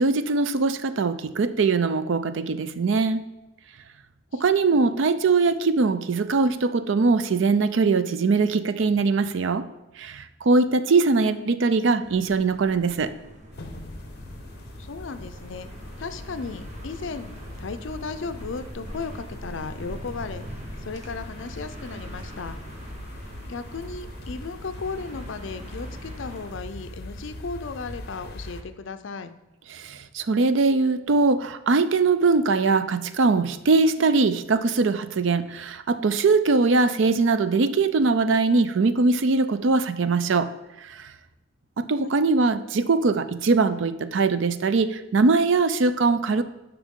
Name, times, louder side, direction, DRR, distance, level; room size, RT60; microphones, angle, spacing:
voice 1, 0.0-3.3 4.3-9.7 10.0-13.1 29.7-40.5 40.8-41.0 41.8-46.4, right 4 dB, 70° right, 12 dB, 0.5 m, -21 dB
voice 2, 11.1-11.9 14.8-15.7 16.0-20.5 20.8-22.6 23.5-29.3 34.0-34.4 42.0-42.2, left 4 dB, 70° left, 11 dB, 0.5 m, -36 dB
sound 1, 12.0-26.5, equal, 35° right, 1.1 m, -43 dB
sound 2, 13.5-28.6, left 1 dB, 55° left, 0.9 m, -41 dB
9.9 x 5.9 x 3.7 m, 0.99 s
head